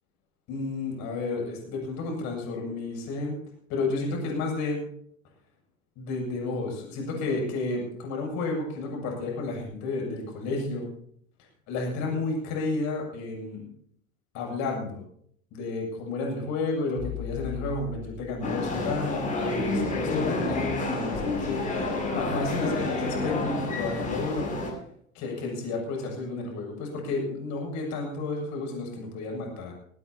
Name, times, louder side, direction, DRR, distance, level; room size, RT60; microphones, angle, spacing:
voice 1, 0.5-3.4 3.7-4.9 6.0-10.9 11.7-13.7 14.3-15.0 15.5-24.5 25.1-29.7, left 3 dB, 40° left, 0 dB, 8.0 m, -31 dB
sound 1, 17.0-19.1, left 10 dB, 75° left, 5.2 m, -38 dB
sound 2, 18.4-24.7, left 3 dB, 20° left, 7.4 m, -29 dB
22.0 x 18.5 x 3.0 m, 0.65 s
figure-of-eight pair, 85°, 42 cm